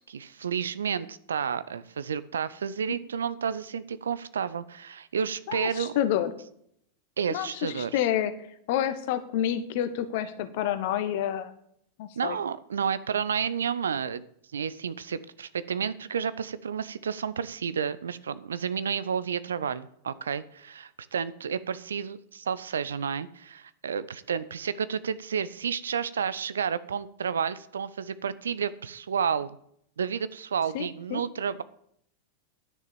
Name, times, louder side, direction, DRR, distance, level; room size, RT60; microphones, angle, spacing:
voice 1, 0.1-5.9 7.2-8.0 12.2-14.2 14.5-29.6 30.0-31.6, right 7 dB, 70° right, 16 dB, 0.6 m, -31 dB
voice 2, 5.5-6.3 7.3-8.3 8.7-11.5 12.0-12.4 30.7-31.2, left 11 dB, 50° left, 11 dB, 1.1 m, -29 dB
10.5 x 6.6 x 7.0 m, 0.68 s
figure-of-eight pair, 90°, 0 cm